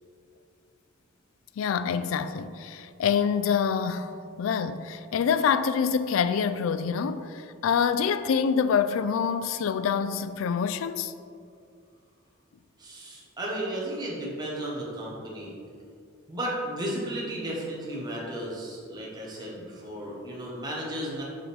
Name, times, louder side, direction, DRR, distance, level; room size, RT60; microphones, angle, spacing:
voice 1, 1.6-11.1, left 6 dB, 85° left, 0.3 m, -26 dB
voice 2, 12.8-15.5 16.3-21.2, right 1 dB, 20° right, 1.2 m, -34 dB
7.2 x 4.9 x 3.4 m
head